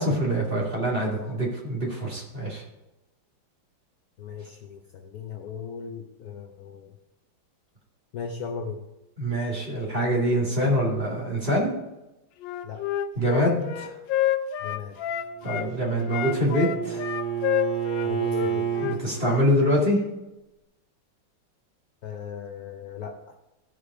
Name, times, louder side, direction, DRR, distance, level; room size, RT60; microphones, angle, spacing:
voice 1, 0.0-2.6 9.2-11.7 13.2-13.9 15.4-17.1 18.8-20.0, equal, 30° right, -3 dB, 2.3 m, -25 dB
voice 2, 4.2-6.9 8.1-8.8 12.6-12.8 14.6-15.0 18.0-18.7 22.0-23.4, left 6 dB, 65° left, 4 dB, 1.0 m, -37 dB
Wind instrument woodwind instrument, 12.4-15.7 16.0-19.5, left 11 dB, 80° left, 1.3 m, -28 dB
Bowed string instrument, 15.2-19.0, right 8 dB, 75° right, 3.0 m, -30 dB
14.5 x 5.0 x 4.8 m, 0.97 s
omnidirectional pair, 2.1 m